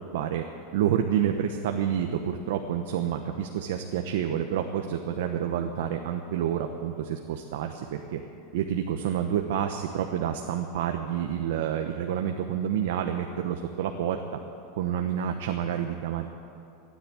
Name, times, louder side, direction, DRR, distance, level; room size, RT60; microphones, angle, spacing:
voice 1, 0.1-0.4 0.7-8.2 8.5-14.2 14.8-16.3, right 9 dB, 70° right, 5 dB, 0.9 m, -28 dB
16.5 x 9.9 x 8.4 m, 2.6 s
supercardioid pair, 170°, 0 cm